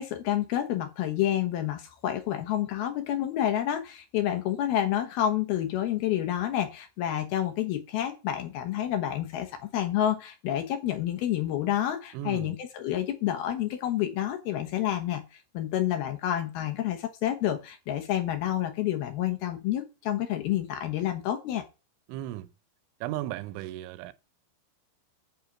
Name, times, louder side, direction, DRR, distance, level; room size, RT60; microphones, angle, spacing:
voice 1, 0.0-15.2 15.5-21.6, left 11 dB, 70° left, 2.6 m, -29 dB
voice 2, 12.1-12.5 22.1-22.5 23.0-24.1, right 14 dB, 85° right, 3.1 m, -35 dB
8.8 x 6.4 x 7.3 m
omnidirectional pair, 5.4 m